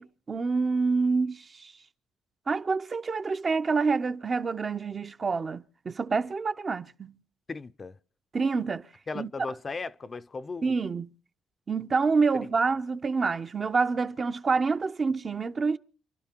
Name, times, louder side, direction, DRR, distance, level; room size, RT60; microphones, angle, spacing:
voice 1, 0.0-1.7 2.5-7.2 8.3-8.9 9.1-9.3 10.6-11.1 11.7-15.8, right 4 dB, 35° right, 0.7 m, -27 dB
voice 2, 7.5-8.0 9.1-10.7, left 4 dB, 35° left, 0.6 m, -36 dB
29.5 x 11.5 x 2.9 m
cardioid pair, 90°, 0 cm